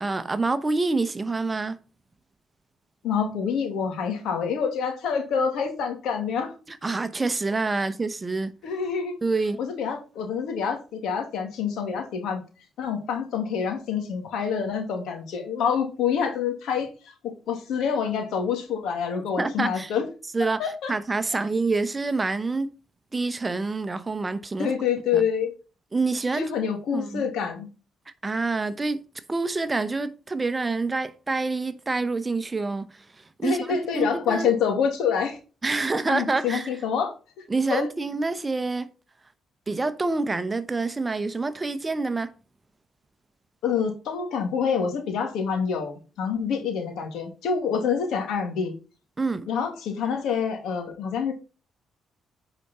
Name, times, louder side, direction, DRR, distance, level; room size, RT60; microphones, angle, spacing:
voice 1, 0.0-1.8 6.7-8.5 9.2-9.6 19.4-19.9 20.3-22.7 23.1-24.7 25.1-25.2 25.9-26.5 26.9-27.2 28.2-33.0 33.4-34.5 35.6-36.7 37.5-38.9 39.7-42.3 49.2-49.5, right 3 dB, 25° right, 0.9 m, -27 dB
voice 2, 3.0-6.5 8.6-9.1 9.6-12.4 12.8-20.1 20.6-20.9 24.6-25.5 26.3-27.7 33.4-35.4 36.1-37.4 37.7-37.9 43.6-48.7 49.5-51.3, left 6 dB, 80° left, 2.3 m, -27 dB
9.1 x 4.9 x 4.2 m
cardioid pair, 90°, 0 cm